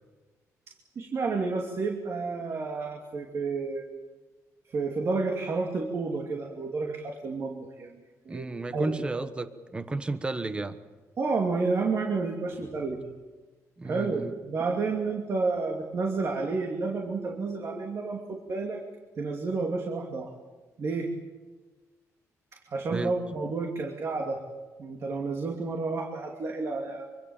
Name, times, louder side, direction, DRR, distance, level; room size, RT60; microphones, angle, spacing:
voice 1, 0.7-3.9 4.7-8.5 8.7-8.9 9.2-9.3 11.2-13.0 13.8-18.8 19.2-20.3 20.8-21.1 22.7-24.4 24.8-27.1, right 4 dB, 50° right, 2 dB, 2.7 m, -30 dB
voice 2, 8.3-10.8 13.8-14.3 22.9-23.2, right 2 dB, 15° right, 10 dB, 1.2 m, -33 dB
25.0 x 25.0 x 7.3 m, 1.3 s
cardioid pair, 135°, 6 cm